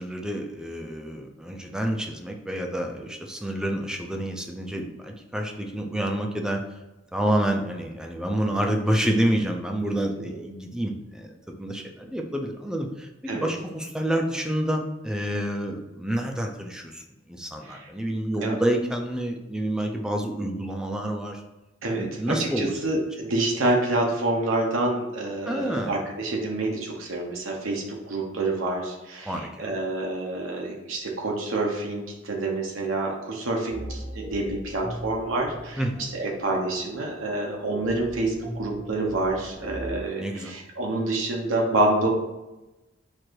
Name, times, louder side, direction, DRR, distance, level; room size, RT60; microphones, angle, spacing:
voice 1, 0.0-6.6 7.1-21.4 22.0-22.7 25.5-25.9 29.3-29.8 35.8-36.1 40.2-40.5, right 1 dB, 5° right, 2 dB, 0.4 m, -28 dB
voice 2, 21.8-42.1, right 2 dB, 90° right, -1 dB, 0.8 m, -27 dB
sound 1, 33.7-40.0, equal, 15° left, 0.8 m, -40 dB
4.5 x 2.5 x 4.5 m, 1.0 s
head